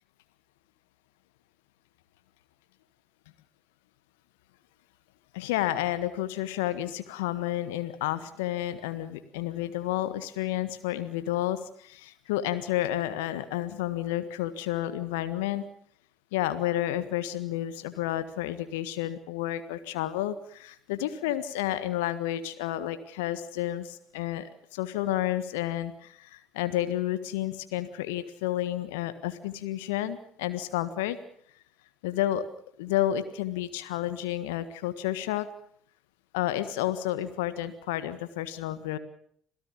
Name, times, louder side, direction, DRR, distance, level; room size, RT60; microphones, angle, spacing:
voice 1, 5.3-15.6 16.3-31.2 32.0-32.4 32.8-35.5 36.3-39.0, left 13 dB, 70° left, 12 dB, 1.5 m, -31 dB
27.0 x 17.0 x 7.2 m, 0.63 s
figure-of-eight pair, 55°, 0 cm